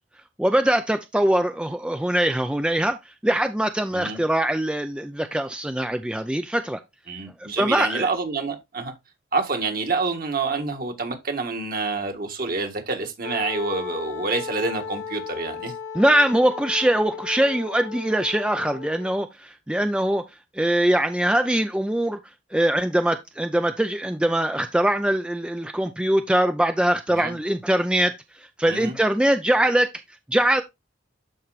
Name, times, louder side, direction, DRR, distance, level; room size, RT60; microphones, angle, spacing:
voice 1, 0.4-3.0 3.2-6.8 7.4-8.1 15.9-20.2 20.5-22.2 22.5-28.2 28.6-29.9 30.3-30.6, right 1 dB, 5° right, 0.4 m, -22 dB
voice 2, 7.1-8.9 9.3-15.7 27.1-27.3 28.7-28.9, right 3 dB, 50° right, 1.5 m, -27 dB
Wind instrument woodwind instrument, 13.2-19.2, left 6 dB, 70° left, 1.0 m, -36 dB
12.5 x 4.4 x 2.4 m
head